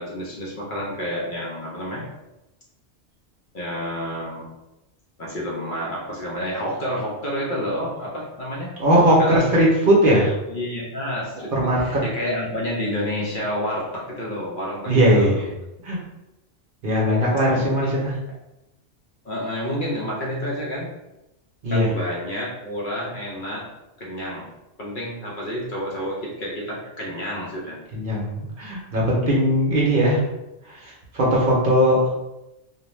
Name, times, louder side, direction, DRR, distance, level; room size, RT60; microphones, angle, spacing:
voice 1, 0.0-2.0 3.5-4.5 5.2-8.7 9.0-9.6 10.5-15.4 17.5-18.0 19.2-20.9 21.7-23.7 24.0-24.5 24.8-27.8, equal, 55° left, -4 dB, 0.7 m, -29 dB
voice 2, 8.8-10.3 11.5-11.8 14.9-15.4 15.8-16.0 16.8-18.1 21.6-21.9 27.9-30.2 30.7-32.1, equal, 55° right, -4 dB, 0.7 m, -19 dB
2.5 x 2.1 x 3.0 m, 0.94 s
omnidirectional pair, 1.2 m